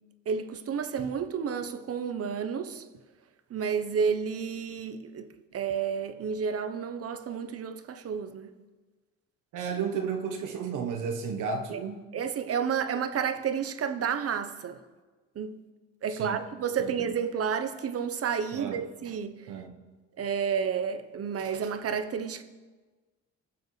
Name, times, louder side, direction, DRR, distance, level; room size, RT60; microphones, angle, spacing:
voice 1, 0.3-2.8 3.5-5.3 5.5-8.5 11.7-11.8 12.1-14.8 15.4-15.5 16.0-19.4 20.2-22.4, right 7 dB, 50° right, 0.9 m, -31 dB
voice 2, 9.5-12.1 16.1-16.4 16.8-16.9 18.5-18.8 19.5-19.8, right 6 dB, 85° right, 1.2 m, -33 dB
20.5 x 7.1 x 3.2 m
cardioid pair, 90°, 30 cm